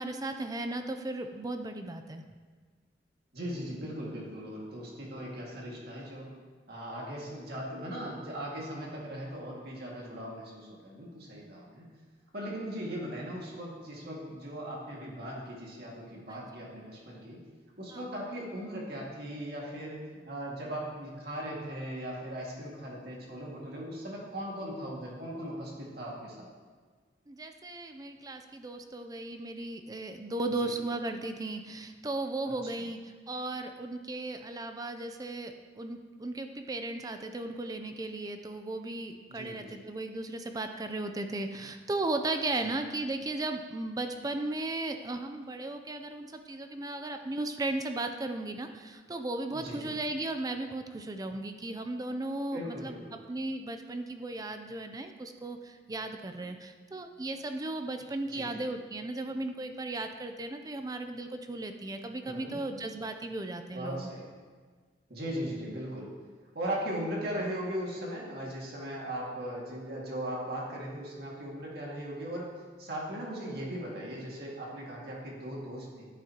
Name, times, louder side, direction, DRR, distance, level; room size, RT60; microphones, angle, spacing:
voice 1, 0.0-2.2 16.3-16.5 17.9-18.0 27.3-53.0 53.3-64.1, right 2 dB, 20° right, 6 dB, 0.5 m, -36 dB
voice 2, 3.3-6.3 6.7-11.9 12.3-17.4 17.8-26.5 30.6-30.7 32.6-32.7 39.3-39.8 42.6-42.7 49.5-49.9 52.5-53.2 58.3-58.6 62.2-62.6 63.7-64.3 65.1-66.1 66.5-72.5 72.8-76.1, equal, 60° right, -3 dB, 2.0 m, -38 dB
11.0 x 9.0 x 2.9 m, 1.5 s
head